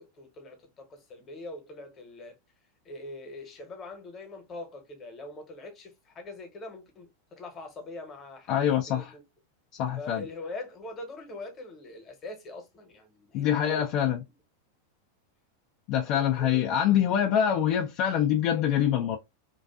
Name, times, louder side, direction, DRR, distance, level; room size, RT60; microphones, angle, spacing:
voice 1, 0.0-2.4 2.8-8.6 8.9-9.2 10.0-14.1 16.0-16.6, left 2 dB, 30° left, 0.9 m, -43 dB
voice 2, 8.5-9.1 9.8-10.2 13.3-14.2 15.9-19.2, left 9 dB, 50° left, 0.4 m, -25 dB
2.5 x 2.3 x 2.3 m
figure-of-eight pair, 90°, 0 cm